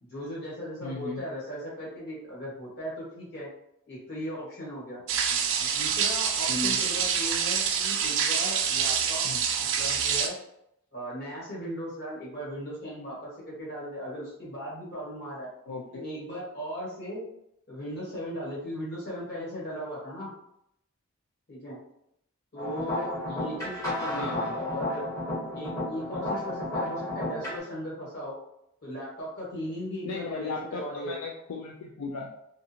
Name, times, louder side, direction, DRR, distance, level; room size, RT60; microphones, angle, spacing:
voice 1, 0.0-3.5 3.9-5.0 5.6-9.2 9.6-10.3 10.9-15.5 15.9-17.2 17.7-20.3 21.5-21.8 22.5-25.1 25.5-28.3 28.8-31.1, equal, 50° left, -7 dB, 1.5 m, -37 dB
voice 2, 0.8-1.2 6.5-6.8 9.2-9.4 15.7-16.0 24.2-24.6 30.0-32.4, left 3 dB, 75° left, -1 dB, 0.4 m, -36 dB
sound 1, 5.1-10.3, right 7 dB, 60° right, 0.4 m, -26 dB
sound 2, 22.6-27.6, left 1 dB, 15° left, 0.8 m, -32 dB
2.5 x 2.5 x 2.7 m, 0.77 s
head